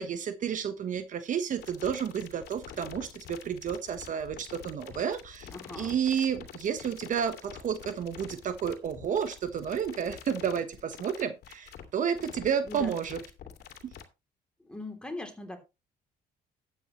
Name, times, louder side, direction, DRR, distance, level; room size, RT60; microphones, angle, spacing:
voice 1, 0.0-5.5 5.8-13.2, right 7 dB, 50° right, 1.2 m, -31 dB
sound 1, 1.6-14.0, left 8 dB, 70° left, 2.5 m, -46 dB
voice 2, 5.5-6.0 12.6-12.9 14.6-15.6, left 2 dB, 5° left, 3.1 m, -40 dB
12.5 x 9.1 x 3.1 m
cardioid pair, 110°, 17 cm